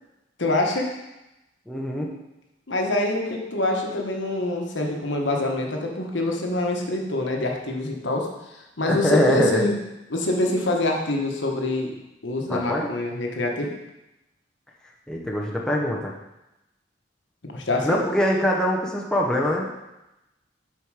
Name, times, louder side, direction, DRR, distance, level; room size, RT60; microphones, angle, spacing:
voice 1, 0.4-1.0 2.7-9.7 10.1-12.0 12.2-13.7 17.5-18.0, left 2 dB, 85° left, 1 dB, 1.3 m, -25 dB
voice 2, 1.7-2.2 8.9-9.7 12.5-12.9 15.1-16.1 17.8-19.7, equal, 5° left, -2 dB, 0.8 m, -23 dB
7.5 x 5.2 x 4.8 m, 0.95 s
head